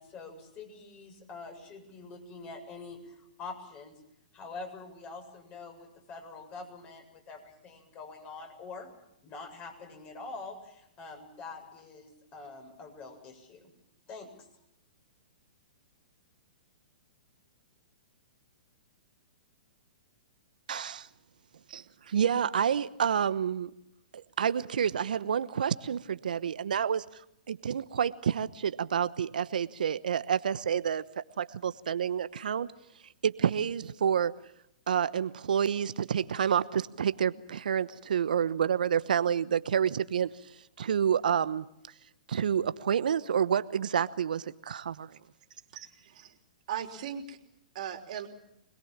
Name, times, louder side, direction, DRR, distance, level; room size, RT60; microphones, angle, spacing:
voice 1, 0.0-4.0 4.3-8.9 9.2-13.7 14.1-14.3, left 3 dB, 30° left, 4 dB, 7.6 m, -45 dB
voice 2, 20.7-21.0 21.7-23.7 24.1-27.0 27.5-31.0 31.4-32.7 33.2-34.4 34.9-40.3 40.8-41.7 42.3-45.2, right 8 dB, 75° right, 15 dB, 1.0 m, -29 dB
voice 3, 45.7-46.4 46.7-47.4 47.7-48.3, right 9 dB, 55° right, 5 dB, 3.4 m, -38 dB
25.0 x 21.0 x 7.4 m, 0.79 s
hypercardioid pair, 125°, 5 cm